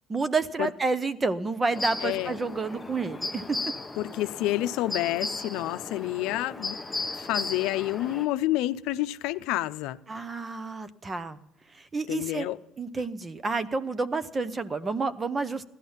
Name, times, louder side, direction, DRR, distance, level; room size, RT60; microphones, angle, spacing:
voice 1, 0.1-3.6 10.1-11.4 11.7-12.5 12.8-15.6, right 3 dB, 20° right, 0.8 m, -29 dB
sound 1, 1.7-8.3, left 3 dB, 10° left, 0.8 m, -36 dB
voice 2, 2.0-2.4 4.0-6.8 7.1-10.0 12.1-12.6, left 16 dB, 80° left, 0.6 m, -29 dB
16.0 x 11.5 x 5.6 m
cardioid pair, 120°, 0 cm